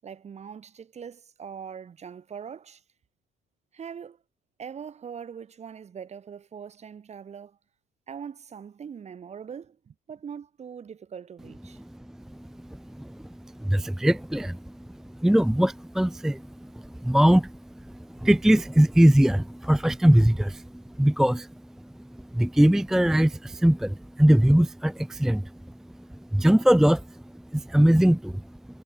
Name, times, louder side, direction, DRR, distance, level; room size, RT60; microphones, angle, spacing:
voice 1, 0.0-2.8 3.7-4.2 4.6-7.6 8.1-11.8, right 7 dB, 40° right, 6.9 m, -41 dB
voice 2, 12.2-21.5 21.8-25.7 26.0-28.6, right 1 dB, ahead, 0.5 m, -22 dB
cardioid pair, 110°, 17 cm